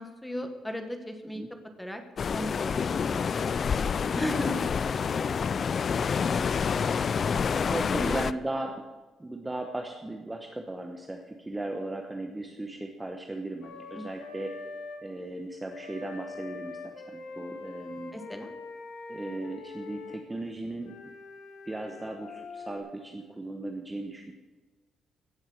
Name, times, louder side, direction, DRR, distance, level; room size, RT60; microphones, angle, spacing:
voice 1, 0.0-1.4 1.8-2.0 2.3-3.4 3.7-3.8 4.1-5.2 7.9-8.2 13.9-14.0 18.1-18.5, left 1 dB, 5° left, 6 dB, 1.4 m, -37 dB
sound 1, 2.2-8.3, left 6 dB, 35° left, 0.3 m, -28 dB
voice 2, 7.7-8.8 9.2-14.5 15.0-18.2 19.1-20.9 21.7-24.3, right 2 dB, 10° right, 3 dB, 1.0 m, -36 dB
Wind instrument woodwind instrument, 13.6-15.0 15.7-20.2 20.8-22.8, left 4 dB, 85° left, 2.1 m, -43 dB
17.0 x 7.7 x 6.4 m, 1.3 s
cardioid pair, 165°, 0 cm